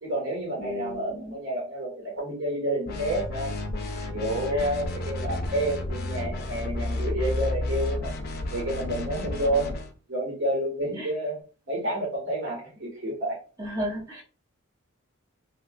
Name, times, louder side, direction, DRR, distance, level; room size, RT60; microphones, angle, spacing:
voice 1, 0.0-3.5 4.1-8.1 8.5-9.7 10.1-11.4 11.7-13.4, right 1 dB, 60° right, -3 dB, 1.7 m, -29 dB
voice 2, 0.6-1.4 4.5-4.7 11.0-11.1 13.6-14.2, equal, 15° right, -6 dB, 0.9 m, -34 dB
sound 1, 2.9-9.9, left 2 dB, 45° left, 0.4 m, -31 dB
3.0 x 2.7 x 2.4 m, 0.36 s
head